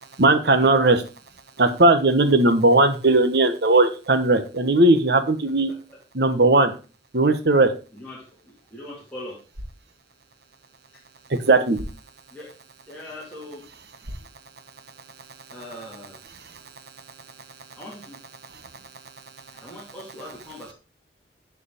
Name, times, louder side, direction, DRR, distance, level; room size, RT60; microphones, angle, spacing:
voice 1, 0.2-1.0 1.6-5.7 6.1-6.7 7.1-7.7 11.5-11.8, right 2 dB, 65° right, 10 dB, 1.2 m, -18 dB
voice 2, 7.9-9.4 12.3-12.5 12.9-13.7 15.5-16.2 17.8-18.2 19.5-20.7, left 1 dB, 5° left, -6 dB, 2.4 m, -40 dB
sound 1, 9.4-15.4, equal, 85° right, 2.5 m, -45 dB
11.5 x 4.9 x 5.0 m, 0.34 s
head